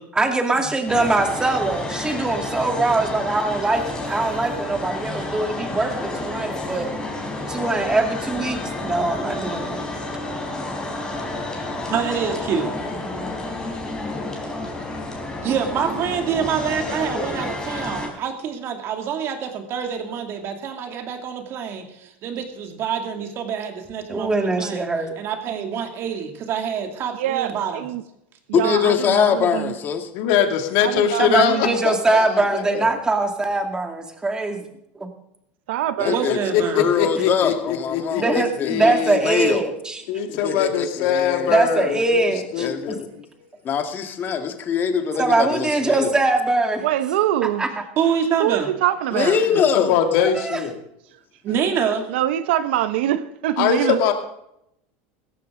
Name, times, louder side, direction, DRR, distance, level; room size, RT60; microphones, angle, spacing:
voice 1, 0.1-6.9 7.5-9.8 24.1-25.1 31.2-34.6 35.0-35.1 38.1-40.0 41.5-43.0 45.2-46.9 47.6-47.7 50.2-50.6, right 2 dB, 15° right, 4 dB, 2.2 m, -22 dB
sound 1, 0.9-18.1, left 2 dB, 10° left, 4.1 m, -30 dB
voice 2, 11.9-12.9 15.4-24.9 25.2-27.8 36.1-36.8 48.0-48.7 51.4-52.1, right 7 dB, 45° right, 5 dB, 2.6 m, -26 dB
voice 3, 27.1-28.0 28.5-29.8 30.8-31.8 35.7-36.3 46.8-47.7 48.4-49.4 52.1-54.0, right 13 dB, 85° right, 13 dB, 0.9 m, -24 dB
voice 4, 28.5-30.1 36.0-36.4 36.7-38.9 39.2-39.6 40.3-41.5 42.6-43.1 43.6-46.1 49.1-50.0, left 7 dB, 35° left, 6 dB, 1.9 m, -23 dB
voice 5, 30.1-32.9 36.5-39.2 40.1-43.0 44.9-45.1 49.5-50.7 53.6-54.1, left 8 dB, 65° left, 5 dB, 2.3 m, -22 dB
16.5 x 14.0 x 3.8 m, 0.78 s
supercardioid pair, 120°, 6 cm